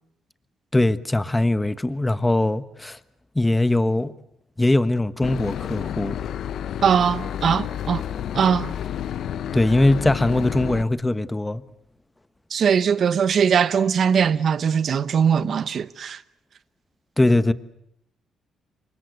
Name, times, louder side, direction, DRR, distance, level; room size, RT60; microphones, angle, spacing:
voice 1, 0.7-3.0 3.3-4.1 4.6-6.2 9.5-11.6 17.2-17.5, left 2 dB, 10° left, 1.2 m, -21 dB
Boat Water vehicle / Engine, 5.2-10.8, left 10 dB, 70° left, 1.1 m, -30 dB
voice 2, 6.8-8.0 8.3-8.7 12.5-16.2, right 7 dB, 55° right, 1.0 m, -20 dB
29.0 x 25.0 x 8.0 m
cardioid pair, 90°, 0 cm